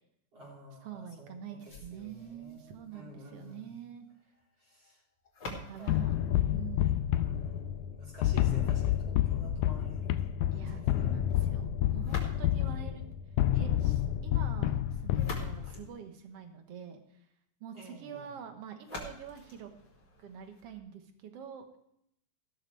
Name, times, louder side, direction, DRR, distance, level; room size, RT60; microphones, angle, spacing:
voice 1, 0.3-3.7 4.6-5.0 5.5-6.1 7.2-11.2 11.7-11.9 15.6-15.8 17.7-18.3, right 1 dB, 40° right, -5 dB, 4.8 m, -52 dB
voice 2, 0.8-4.1 5.5-6.2 6.4-7.0 10.5-13.1 13.5-17.2 17.6-19.7 20.2-21.8, right 8 dB, 60° right, 6 dB, 1.8 m, -46 dB
sound 1, 1.6-7.6 12.0-12.8 14.8-16.8 18.8-20.8, left 2 dB, 35° left, 2.8 m, -48 dB
sound 2, 5.9-15.8, left 12 dB, 85° left, 1.8 m, -29 dB
15.5 x 13.0 x 3.3 m, 0.74 s
omnidirectional pair, 4.1 m